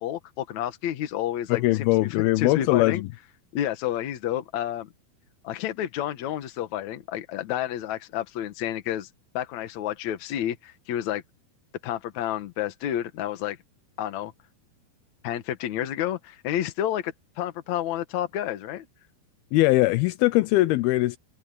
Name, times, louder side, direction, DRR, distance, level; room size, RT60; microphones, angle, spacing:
voice 1, 0.0-3.0 3.5-4.9 5.4-9.1 9.3-11.2 11.8-13.6 14.0-14.3 15.2-18.9, left 11 dB, 60° left, 2.3 m, -30 dB
voice 2, 1.5-3.0 19.5-21.2, left 18 dB, 80° left, 2.5 m, -21 dB
omnidirectional pair, 4.4 m